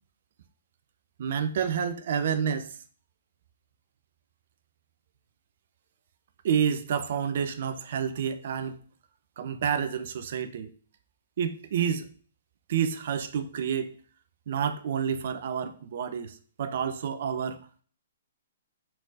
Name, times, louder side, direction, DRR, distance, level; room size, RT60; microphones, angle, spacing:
voice 1, 1.2-2.8 6.4-8.8 9.4-10.7 11.4-12.1 12.7-13.9 14.5-17.6, right 7 dB, 60° right, 0.9 m, -29 dB
6.1 x 4.3 x 4.8 m
hypercardioid pair, 125°, 0 cm